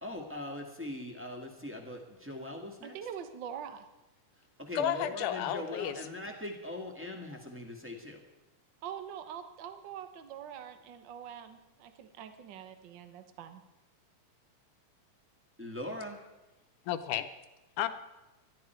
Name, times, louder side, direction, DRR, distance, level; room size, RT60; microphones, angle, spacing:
voice 1, 0.0-3.0 4.6-8.2 15.6-16.2, left 1 dB, 5° right, 2 dB, 1.2 m, -41 dB
voice 2, 2.8-3.8 8.8-13.6, right 8 dB, 60° right, 8 dB, 1.2 m, -44 dB
voice 3, 4.7-6.0 16.9-17.3 17.8-17.9, left 10 dB, 80° left, 9 dB, 2.4 m, -32 dB
20.0 x 13.0 x 4.6 m, 1.0 s
omnidirectional pair, 3.6 m